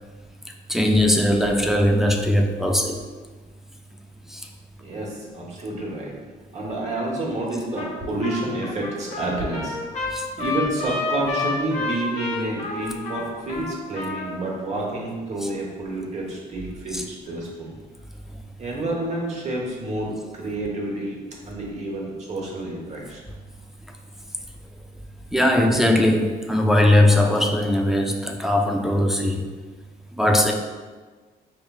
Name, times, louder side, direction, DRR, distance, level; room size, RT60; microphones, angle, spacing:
voice 1, 0.7-3.0 4.3-4.4 10.1-10.3 15.4-15.5 16.9-17.0 25.3-29.4 30.1-30.5, left 1 dB, ahead, 2 dB, 0.3 m, -19 dB
voice 2, 4.8-6.2 6.5-17.7 18.6-21.2 21.4-23.2, right 1 dB, 40° right, -3 dB, 1.1 m, -29 dB
Trumpet, 7.8-8.0 8.2-14.4, left 3 dB, 45° left, 1.0 m, -29 dB
4.9 x 3.1 x 2.4 m, 1.4 s
cardioid pair, 110°, 17 cm